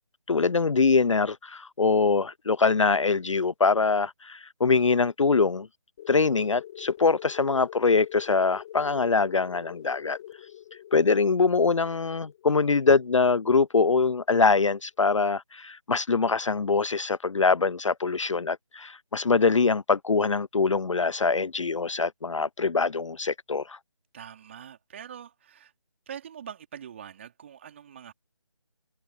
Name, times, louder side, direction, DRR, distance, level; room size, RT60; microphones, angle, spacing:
voice 1, 0.3-5.7 6.1-10.2 10.9-23.8, left 4 dB, 65° left, 0.4 m, -23 dB
sound 1, 6.0-14.3, left 12 dB, 10° left, 0.8 m, -45 dB
voice 2, 24.1-25.7 26.1-28.1, right 8 dB, 20° right, 3.6 m, -44 dB
figure-of-eight pair, 160°, 17 cm